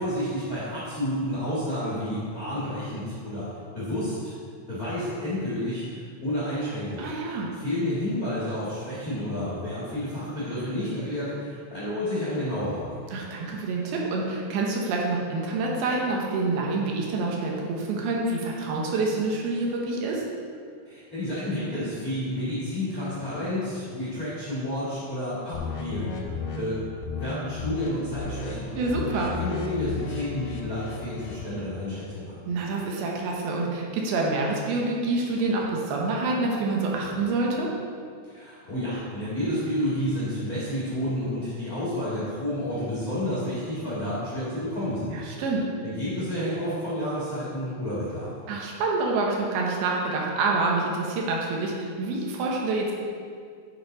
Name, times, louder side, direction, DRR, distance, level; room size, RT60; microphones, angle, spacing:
voice 1, 0.0-3.5 3.7-4.3 4.7-12.9 20.8-26.8 27.2-28.7 29.2-32.4 38.2-45.1 45.8-48.3, left 1 dB, 55° left, -10 dB, 1.0 m, -30 dB
voice 2, 7.0-7.5 13.1-20.2 28.8-29.3 32.5-37.7 45.1-45.6 48.5-52.9, right 3 dB, 75° right, -1 dB, 2.7 m, -27 dB
sound 1, 25.5-26.6 27.0-27.3 27.6-27.9 28.1-31.4, left 4 dB, 85° left, 1.8 m, -34 dB
9.4 x 5.5 x 3.9 m, 2.2 s
omnidirectional pair, 4.9 m